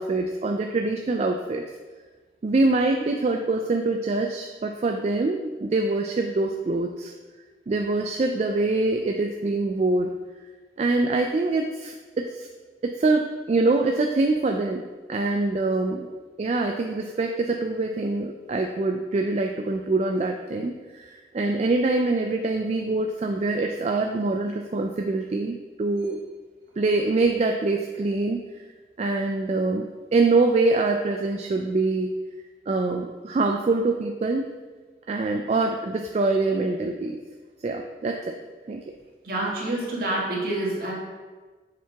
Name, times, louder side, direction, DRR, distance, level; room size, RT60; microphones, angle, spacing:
voice 1, 0.0-1.6 2.4-7.1 7.7-10.1 10.8-12.5 12.8-14.8 15.1-16.1 16.4-26.2 26.8-28.6 29.0-29.9 30.1-32.1 32.7-34.5 35.1-37.2 37.6-38.3 38.7-38.8, right 3 dB, 35° right, 3 dB, 0.3 m, -24 dB
voice 2, 39.2-40.9, right 1 dB, 55° right, -4 dB, 1.7 m, -27 dB
7.3 x 4.5 x 3.4 m, 1.4 s
head